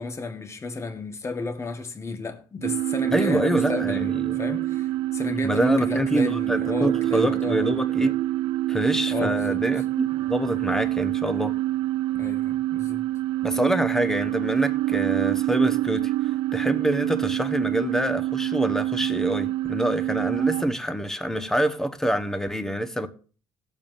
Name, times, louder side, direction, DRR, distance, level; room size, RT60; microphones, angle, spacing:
voice 1, 0.0-7.7 9.1-9.6 12.1-13.0, left 3 dB, 30° left, 1.5 m, -33 dB
sound 1, 2.6-20.6, right 15 dB, 80° right, 0.4 m, -26 dB
voice 2, 3.1-4.4 5.4-8.2 8.7-11.6 13.4-23.1, equal, 5° left, 1.2 m, -26 dB
18.5 x 7.1 x 2.7 m
supercardioid pair, 80°, 9 cm